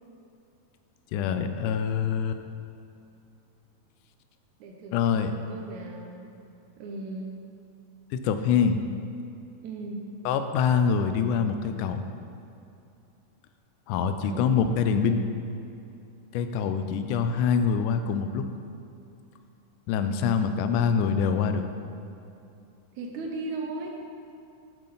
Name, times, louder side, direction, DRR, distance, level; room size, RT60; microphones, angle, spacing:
voice 1, 1.1-2.4 4.9-5.3 8.1-8.8 10.3-12.0 13.9-15.3 16.3-18.4 19.9-21.7, left 6 dB, 80° left, 8 dB, 1.9 m, -25 dB
voice 2, 4.6-6.3 6.8-7.3 9.6-10.0 14.2-14.5 22.9-24.0, right 3 dB, 75° right, 1 dB, 1.8 m, -37 dB
9.5 x 7.4 x 4.0 m, 2.7 s
omnidirectional pair, 4.0 m